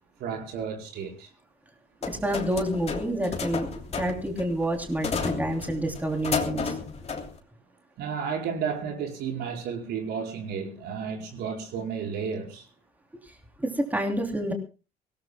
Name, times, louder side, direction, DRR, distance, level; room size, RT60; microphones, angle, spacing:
voice 1, 0.2-1.3 8.0-12.7, right 6 dB, 75° right, 4.8 m, -32 dB
sound 1, 2.0-7.4, left 5 dB, 40° left, 3.0 m, -32 dB
voice 2, 2.1-3.7 3.9-6.7 13.6-14.5, right 1 dB, 10° right, 3.0 m, -28 dB
24.5 x 18.0 x 2.2 m
cardioid pair, 110°, 17 cm